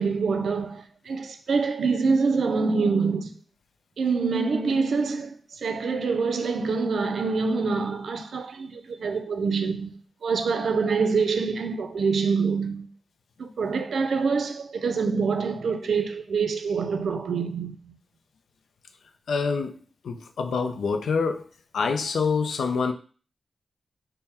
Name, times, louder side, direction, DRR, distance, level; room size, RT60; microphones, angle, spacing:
voice 1, 0.0-3.3 4.0-9.9 10.2-12.9 13.4-18.0, right 4 dB, 80° right, 0.4 m, -25 dB
voice 2, 19.3-19.8 20.0-21.4 21.7-22.9, left 5 dB, 85° left, 0.4 m, -26 dB
3.5 x 2.1 x 4.2 m
cardioid pair, 50°, 0 cm